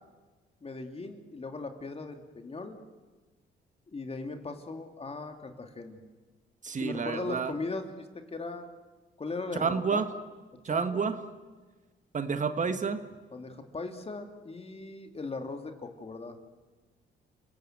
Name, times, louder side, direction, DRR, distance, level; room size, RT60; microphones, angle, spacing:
voice 1, 0.6-2.8 3.9-6.0 6.8-8.7 9.2-10.1 10.6-11.2 13.3-16.4, left 3 dB, 30° left, 6 dB, 2.7 m, -38 dB
voice 2, 6.6-7.5 9.6-10.1 10.6-11.1 12.1-13.0, right 5 dB, 40° right, 10 dB, 1.7 m, -29 dB
29.5 x 18.0 x 7.9 m, 1.3 s
cardioid pair, 90°, 20 cm